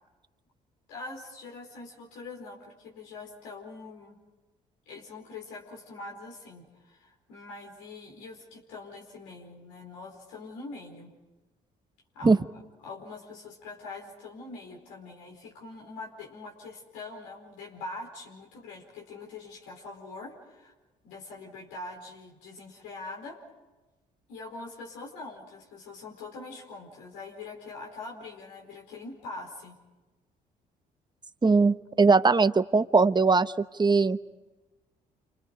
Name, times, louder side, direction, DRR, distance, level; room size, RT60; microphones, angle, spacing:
voice 1, 0.9-4.2 4.9-11.1 12.1-12.4 12.8-20.7 21.0-23.4 24.3-29.8, left 3 dB, 85° left, -1 dB, 4.6 m, -43 dB
voice 2, 31.4-33.5 33.8-34.2, right 4 dB, 25° right, 11 dB, 1.0 m, -20 dB
29.0 x 27.0 x 5.2 m, 1.1 s
hypercardioid pair, 55°, 19 cm